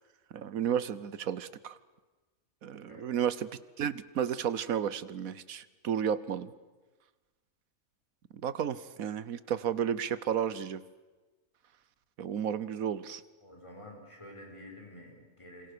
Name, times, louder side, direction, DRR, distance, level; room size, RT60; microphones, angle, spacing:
voice 1, 0.3-1.8 2.6-3.5 3.8-6.5 8.4-10.8 12.2-13.2, right 8 dB, 75° right, 16 dB, 1.4 m, -32 dB
voice 2, 13.4-15.7, left 1 dB, 20° left, 1 dB, 5.5 m, -49 dB
27.5 x 26.0 x 6.8 m, 1.2 s
omnidirectional pair, 1.5 m